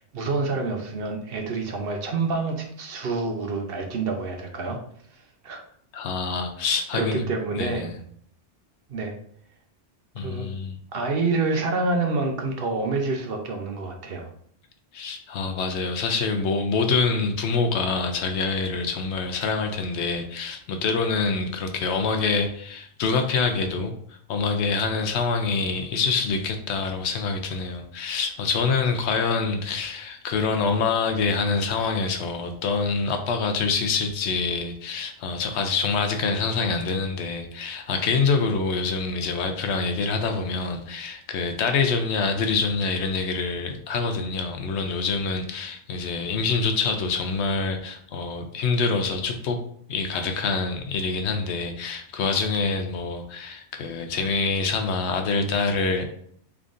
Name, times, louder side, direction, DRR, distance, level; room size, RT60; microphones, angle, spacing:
voice 1, 0.0-4.8 5.1-5.6 6.9-7.9 8.9-9.1 10.2-10.5 10.9-14.3, right 3 dB, 60° right, 3 dB, 0.8 m, -27 dB
voice 2, 5.9-7.2 7.5-7.9 10.1-10.8 14.9-49.6 49.9-56.0, left 4 dB, 75° left, 5 dB, 0.8 m, -26 dB
3.8 x 3.4 x 2.5 m, 0.64 s
omnidirectional pair, 1.2 m